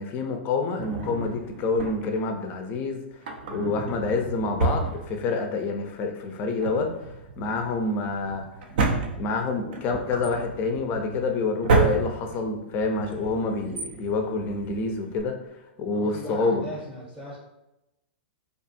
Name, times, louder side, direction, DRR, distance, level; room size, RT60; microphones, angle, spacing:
voice 1, 0.0-3.0 3.5-6.9 7.4-8.4 9.2-15.4 15.8-16.7, left 3 dB, 35° left, 4 dB, 0.4 m, -27 dB
Drawer open or close, 0.8-2.3 3.1-5.6 5.9-6.0 6.5-15.2, right 3 dB, 60° right, 0.4 m, -30 dB
voice 2, 15.9-17.4, equal, 5° right, -6 dB, 0.7 m, -38 dB
2.5 x 2.3 x 2.6 m, 0.92 s
figure-of-eight pair, 105°, 6 cm